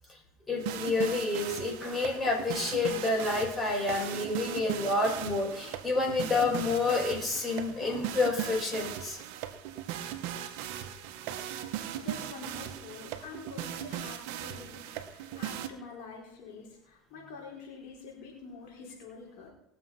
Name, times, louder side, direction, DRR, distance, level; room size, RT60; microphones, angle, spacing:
voice 1, 0.5-9.2 11.8-11.9, left 3 dB, 25° left, -1 dB, 6.6 m, -29 dB
sound 1, 0.6-15.7, right 11 dB, 70° right, 1.2 m, -38 dB
voice 2, 11.9-19.5, left 4 dB, 70° left, -2 dB, 4.3 m, -46 dB
20.5 x 6.9 x 5.8 m, 0.79 s
hypercardioid pair, 85°, 0 cm